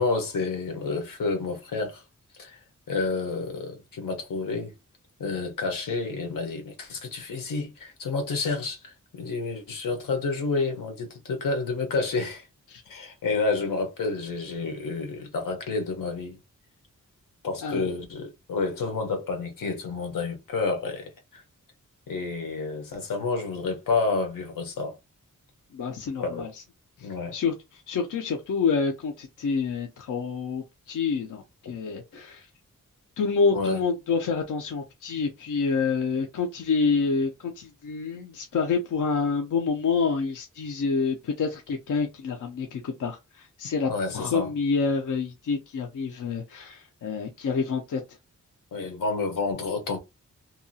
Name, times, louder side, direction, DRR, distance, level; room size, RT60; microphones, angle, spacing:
voice 1, 0.0-2.0 2.4-2.6 2.9-4.7 5.2-12.4 12.9-16.4 17.4-21.4 22.1-24.9 26.2-26.5 27.0-27.3 32.1-32.2 33.5-33.8 43.9-44.5 48.7-50.0, left 3 dB, 90° left, 0.9 m, -29 dB
voice 2, 25.7-26.6 27.0-32.5 33.2-48.0, left 5 dB, 70° left, 0.5 m, -28 dB
2.7 x 2.3 x 2.7 m
wide cardioid pair, 170°, 32 cm